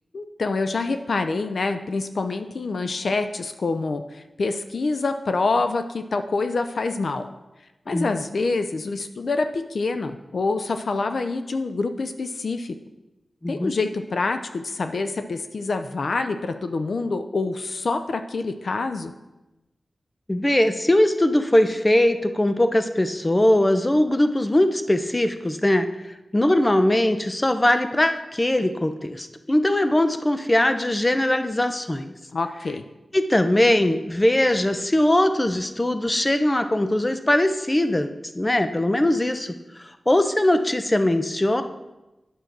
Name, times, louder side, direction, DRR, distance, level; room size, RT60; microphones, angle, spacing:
voice 1, 0.1-7.3 7.9-12.8 13.5-19.1 32.3-32.8, left 3 dB, 70° left, 8 dB, 0.5 m, -26 dB
voice 2, 13.4-13.7 20.3-25.9 26.3-32.1 33.1-39.5 39.8-41.6, left 1 dB, 20° left, 8 dB, 0.7 m, -21 dB
9.3 x 6.4 x 5.9 m, 1.0 s
wide cardioid pair, 85°, 0 cm